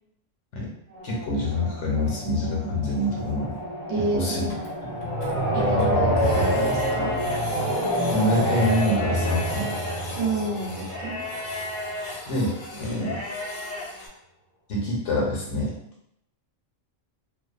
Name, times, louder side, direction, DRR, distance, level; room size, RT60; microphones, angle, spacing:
sound 1, 0.9-11.8, equal, 15° right, 0.7 m, -27 dB
voice 1, 1.0-3.5 4.0-4.4 5.0-5.1 8.1-9.7 12.3-13.2 14.7-15.7, left 1 dB, 70° left, -3 dB, 1.0 m, -26 dB
Printer, 2.5-2.6 2.8-2.9 3.3-3.4 3.6-3.7 4.0-4.1 4.3-5.3 5.8-14.1, left 2 dB, 85° left, 1.0 m, -41 dB
voice 2, 3.9-4.6 5.5-7.1 10.2-11.2, right 2 dB, 70° right, -2 dB, 0.9 m, -29 dB
sound 2, 6.1-7.4 8.3-10.0 10.9-12.1 12.9-13.8, left 1 dB, 50° left, 0.5 m, -34 dB
2.5 x 2.1 x 2.3 m, 0.79 s
omnidirectional pair, 1.4 m